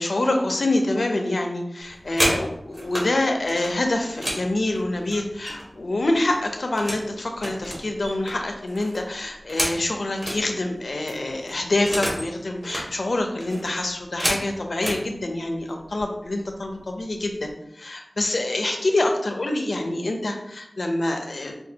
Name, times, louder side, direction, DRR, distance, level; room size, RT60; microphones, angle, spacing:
voice 1, 0.0-21.5, left 2 dB, 85° left, 3 dB, 0.5 m, -26 dB
sound 1, 1.8-3.1 3.5-5.8 6.1-7.1 7.4-10.4 10.8-10.9 11.1-12.3 12.6-12.9 13.4-15.0 15.9-16.0 16.4-16.7 17.0-17.5, equal, 40° right, 1.2 m, -30 dB
5.1 x 2.3 x 2.7 m, 0.78 s
wide cardioid pair, 65°, 0 cm